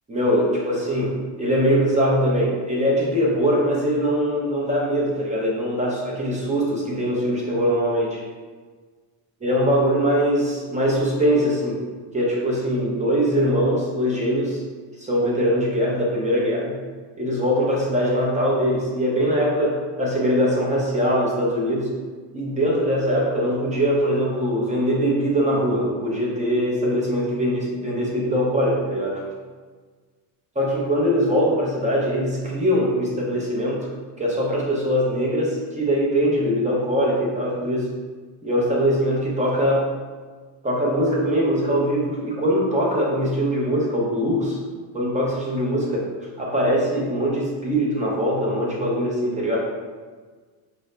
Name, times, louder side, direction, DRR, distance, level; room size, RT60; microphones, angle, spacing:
voice 1, 0.1-8.2 9.4-11.8 12.1-14.6 15.0-16.8 17.2-21.9 22.3-29.2 30.6-33.9 34.2-37.9 38.4-39.9 40.6-44.6 44.9-46.0 46.4-49.6, equal, 15° right, -4 dB, 0.7 m, -22 dB
5.3 x 2.6 x 3.2 m, 1.5 s
cardioid pair, 160°, 48 cm